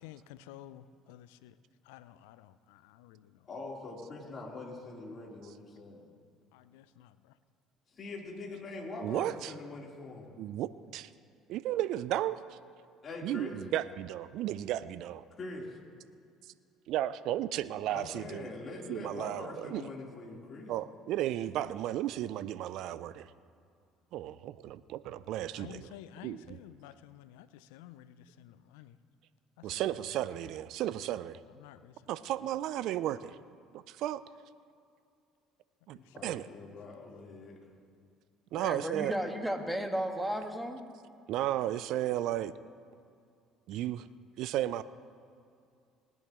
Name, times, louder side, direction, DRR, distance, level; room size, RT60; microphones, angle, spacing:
voice 1, 0.0-1.6 1.8-3.5 6.5-7.4 25.5-29.0 29.6-30.0 31.6-32.1 35.9-36.6 43.7-43.9, left 12 dB, 80° left, 15 dB, 0.4 m, -52 dB
voice 2, 3.4-6.0 8.0-10.3 13.0-13.6 15.3-15.7 17.9-20.7 36.0-37.6, left 3 dB, 40° left, -3 dB, 3.6 m, -43 dB
voice 3, 9.0-9.5 10.4-11.1 11.5-12.4 13.2-15.2 16.9-18.5 18.9-19.8 20.7-23.3 24.1-25.9 26.2-26.4 29.6-31.4 32.1-33.4 34.0-34.2 35.9-36.5 38.5-39.1 41.3-42.5 43.7-44.0 44.4-44.8, right 13 dB, 65° right, 15 dB, 0.4 m, -34 dB
voice 4, 38.6-40.8, equal, 5° right, 4 dB, 1.6 m, -34 dB
19.5 x 10.5 x 3.0 m, 2.4 s
hypercardioid pair, 65°, 0 cm